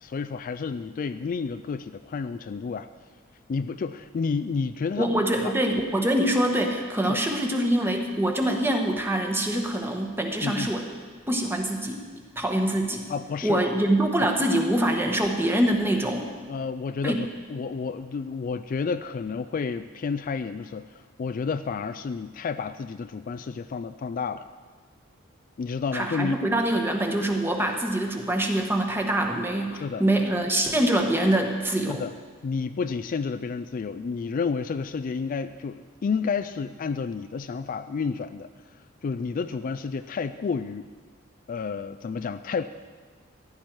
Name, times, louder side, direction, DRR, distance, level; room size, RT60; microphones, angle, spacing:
voice 1, 0.0-2.9 3.5-5.5 7.0-7.2 10.4-10.7 13.1-13.6 16.5-24.5 25.6-26.4 29.7-30.0 31.9-32.1 32.4-38.5 39.0-40.9 41.5-42.6, left 5 dB, 45° left, 10 dB, 0.3 m, -30 dB
voice 2, 5.0-10.8 11.3-12.0 12.4-13.1 13.4-16.3 17.0-17.2 25.9-32.0, right 1 dB, 10° right, 3 dB, 1.2 m, -24 dB
15.0 x 11.0 x 4.6 m, 1.5 s
head